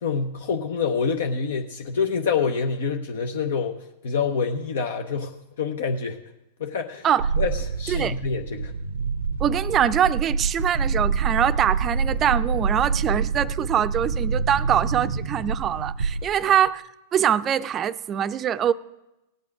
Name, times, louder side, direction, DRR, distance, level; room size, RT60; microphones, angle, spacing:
voice 1, 0.0-6.2 6.6-7.1 7.3-8.7 13.1-13.2 16.4-16.5, left 5 dB, 70° left, 5 dB, 0.7 m, -27 dB
sound 1, 7.2-16.6, right 5 dB, 80° right, 0.6 m, -26 dB
voice 2, 9.4-16.8 17.1-18.7, right 9 dB, 30° right, 14 dB, 0.4 m, -23 dB
17.0 x 8.3 x 4.7 m, 0.94 s
hypercardioid pair, 100°, 0 cm